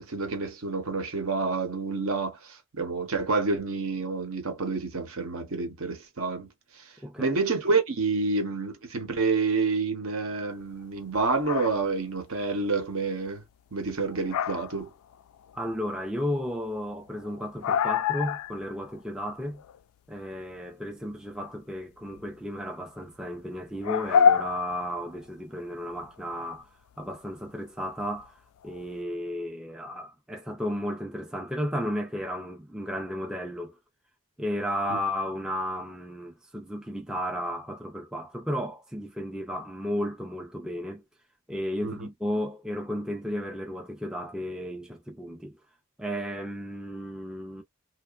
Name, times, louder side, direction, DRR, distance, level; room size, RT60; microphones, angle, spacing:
voice 1, 0.1-6.5 7.2-13.4 13.7-14.9 34.9-35.0 41.8-42.1, right 4 dB, 75° right, 0.8 m, -28 dB
voice 2, 7.0-7.4 15.5-19.6 20.1-26.7 27.0-33.8 34.4-41.0 41.5-45.6 46.0-47.6, equal, 5° right, 0.3 m, -33 dB
sound 1, 11.2-11.8 14.0-14.9 15.1-15.6 16.1-16.2 16.5-16.6 16.8-16.9 17.1-18.6 18.9-19.0 19.5-19.8 22.2-22.3 23.8-25.3 26.0-26.4 28.2-28.3 28.6-28.8, left 7 dB, 85° left, 0.3 m, -26 dB
2.8 x 2.0 x 2.3 m
head